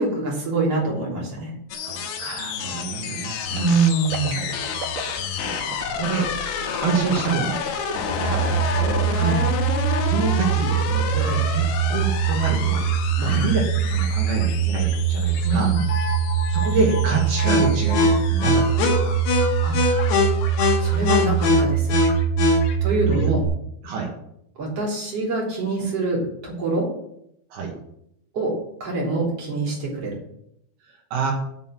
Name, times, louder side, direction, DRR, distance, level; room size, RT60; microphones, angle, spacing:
voice 1, 0.0-1.5 3.5-4.5 9.1-9.4 11.2-11.3 13.2-13.5 15.4-15.8 19.6-20.3 20.8-21.9 22.8-23.4 24.6-26.9 28.3-28.5 28.8-30.2, right 3 dB, 35° right, -3 dB, 3.7 m, -25 dB
sound 1, 1.7-21.6, left 6 dB, 80° left, 3.7 m, -31 dB
voice 2, 1.8-3.7 4.3-4.5 5.3-6.3 6.8-7.6 7.9-9.1 10.0-11.6 11.9-12.9 13.2-15.7 16.5-19.2 22.9-23.3 23.8-24.1 26.2-26.3 27.5-27.7 30.8-31.3, right 5 dB, 60° right, 0 dB, 3.2 m, -27 dB
sound 2, 3.5-9.3 9.7-9.8, right 6 dB, 80° right, 3.8 m, -37 dB
sound 3, 8.1-23.5, right 4 dB, 60° left, 4.0 m, -21 dB
9.5 x 6.8 x 7.5 m, 0.76 s
omnidirectional pair, 5.8 m